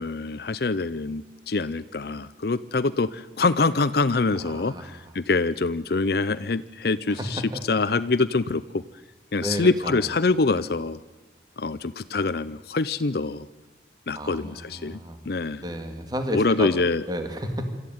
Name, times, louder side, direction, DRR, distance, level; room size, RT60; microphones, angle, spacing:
voice 1, 0.0-7.4 7.7-8.8 9.3-11.0 11.6-13.5 14.1-15.0 15.3-15.6 16.3-17.0, left 3 dB, 60° left, 14 dB, 0.6 m, -25 dB
voice 2, 4.4-5.0 7.1-7.6 9.4-10.1 14.1-15.2 15.6-16.7 17.1-17.7, equal, 20° right, 6 dB, 2.3 m, -32 dB
26.0 x 14.0 x 9.3 m, 1.2 s
head